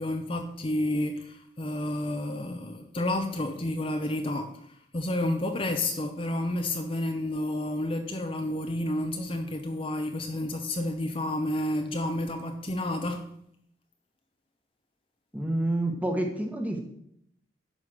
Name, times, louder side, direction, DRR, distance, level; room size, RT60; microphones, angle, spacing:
voice 1, 0.0-4.6 4.9-13.3, left 1 dB, 30° left, 0.8 m, -30 dB
voice 2, 15.3-16.8, right 1 dB, 10° right, 1.4 m, -28 dB
11.0 x 5.2 x 6.4 m
head